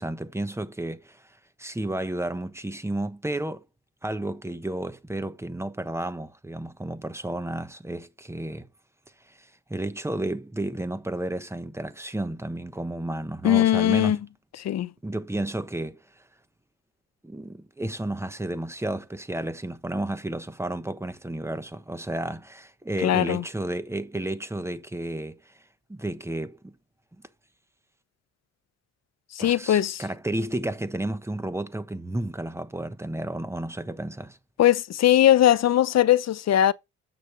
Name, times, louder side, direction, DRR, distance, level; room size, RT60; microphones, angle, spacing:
voice 1, 0.0-3.6 4.0-8.7 9.3-14.2 15.0-16.2 17.2-25.5 25.9-26.7 29.4-34.4, right 1 dB, 10° right, 1.1 m, -32 dB
voice 2, 13.4-14.2 14.6-14.9 23.0-23.4 29.4-30.0 34.6-36.7, left 12 dB, 60° left, 0.8 m, -20 dB
8.2 x 6.3 x 8.2 m
cardioid pair, 90°, 30 cm